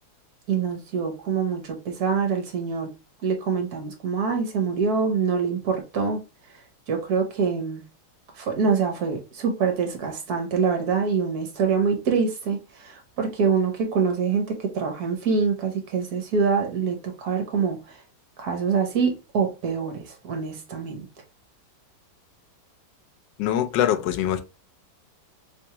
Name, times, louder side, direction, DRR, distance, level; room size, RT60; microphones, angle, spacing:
voice 1, 0.5-2.9 3.2-6.2 6.9-7.8 8.4-18.0 18.4-21.1, right 5 dB, 60° right, 1.4 m, -25 dB
voice 2, 23.4-24.4, left 11 dB, 80° left, 1.2 m, -23 dB
3.4 x 3.2 x 2.8 m
omnidirectional pair, 2.0 m